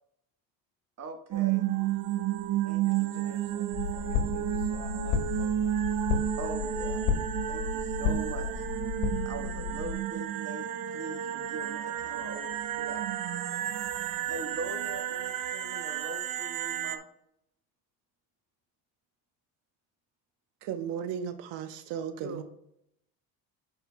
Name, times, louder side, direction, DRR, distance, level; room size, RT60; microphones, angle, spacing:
voice 1, 1.0-1.7 2.6-3.1 6.4-7.0 7.5-8.6 9.2-13.0 14.3-17.1 22.2-22.4, right 3 dB, 35° right, 5 dB, 1.4 m, -41 dB
sound 1, 1.3-17.0, right 11 dB, 50° right, 0.7 m, -32 dB
voice 2, 1.6-2.4 2.8-5.8, left 4 dB, 55° left, -3 dB, 2.4 m, -53 dB
sound 2, 3.7-9.9, left 7 dB, 75° left, 1.2 m, -33 dB
voice 3, 20.6-22.4, right 8 dB, 80° right, 10 dB, 0.9 m, -35 dB
12.5 x 4.4 x 2.2 m, 0.75 s
supercardioid pair, 100°, 42 cm